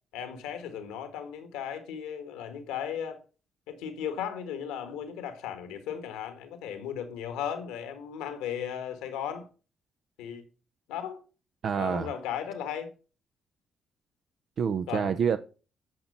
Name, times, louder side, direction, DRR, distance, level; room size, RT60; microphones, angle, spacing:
voice 1, 0.1-3.2 3.7-9.5 10.2-10.4 10.9-11.2 11.8-12.9 14.9-15.2, left 8 dB, 90° left, 1.3 m, -36 dB
voice 2, 11.6-12.1 14.6-15.4, right 7 dB, 65° right, 0.5 m, -27 dB
9.8 x 4.5 x 5.2 m
supercardioid pair, 55°, 0 cm